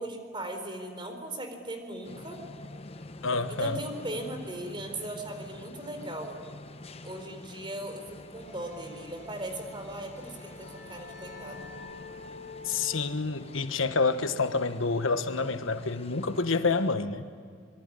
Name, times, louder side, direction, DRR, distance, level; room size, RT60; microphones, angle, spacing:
voice 1, 0.0-2.4 3.5-6.4 7.0-11.6, right 1 dB, 25° right, 4.2 m, -38 dB
sound 1, 2.0-17.0, left 2 dB, 30° left, 0.9 m, -47 dB
voice 2, 3.2-3.8 12.6-17.3, left 4 dB, 85° left, 1.3 m, -28 dB
sound 2, 8.1-13.1, right 2 dB, 70° right, 4.3 m, -56 dB
sound 3, 10.0-15.4, left 4 dB, 50° left, 2.0 m, -48 dB
25.5 x 23.5 x 9.9 m
head